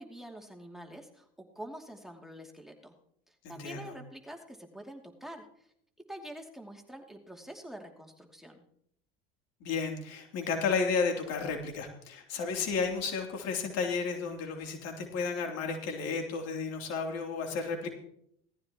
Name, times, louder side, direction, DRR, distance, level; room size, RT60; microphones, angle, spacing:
voice 1, 0.0-2.9 3.3-5.5 6.1-8.6, right 1 dB, ahead, 2 dB, 2.6 m, -46 dB
voice 2, 3.4-3.9 9.6-17.9, left 5 dB, 60° left, 2 dB, 3.1 m, -32 dB
18.0 x 14.5 x 3.0 m, 0.71 s
hypercardioid pair, 70°, 30 cm